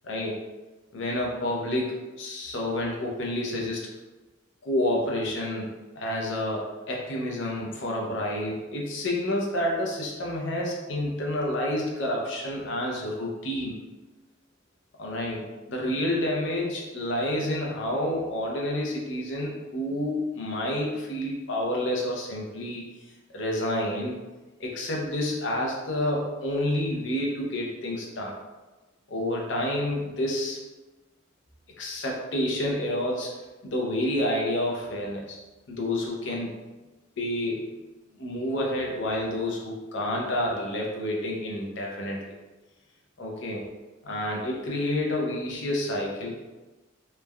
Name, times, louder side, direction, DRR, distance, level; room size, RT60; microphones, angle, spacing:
voice 1, 0.0-0.4 0.9-3.9 4.6-5.7 6.0-13.8 15.0-22.9 23.3-24.2 24.6-28.3 29.1-30.6 31.8-33.3 33.6-35.4 35.7-36.5 37.2-37.7 38.2-42.4 43.2-43.6 44.0-46.5, left 1 dB, 60° left, -2 dB, 0.6 m, -29 dB
3.2 x 2.1 x 2.3 m, 1.2 s
head